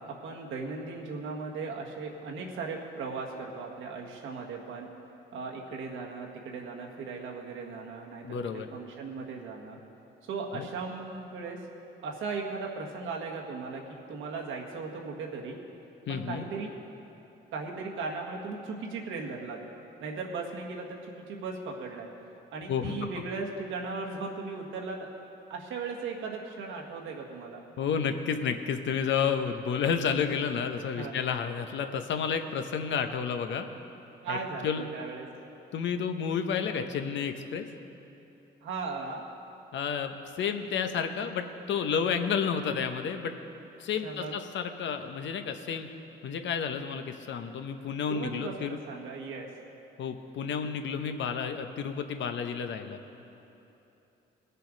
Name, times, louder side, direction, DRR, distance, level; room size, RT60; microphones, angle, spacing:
voice 1, 0.0-4.9 5.3-9.8 10.2-11.6 12.0-15.6 16.1-16.7 17.5-19.6 20.0-22.1 22.5-25.1 25.5-27.6 31.0-31.1 34.2-35.3 38.6-39.2 44.0-44.3 48.1-49.5, right 4 dB, 85° right, 0 dB, 1.6 m, -37 dB
voice 2, 8.2-8.7 10.5-10.7 16.1-16.4 22.7-23.0 27.8-33.7 34.3-34.4 34.6-34.9 35.7-37.7 39.7-43.3 43.8-45.9 46.2-48.8 50.0-53.0, left 7 dB, 70° left, 7 dB, 0.9 m, -31 dB
19.5 x 6.8 x 5.1 m, 3.0 s
cardioid pair, 90°, 20 cm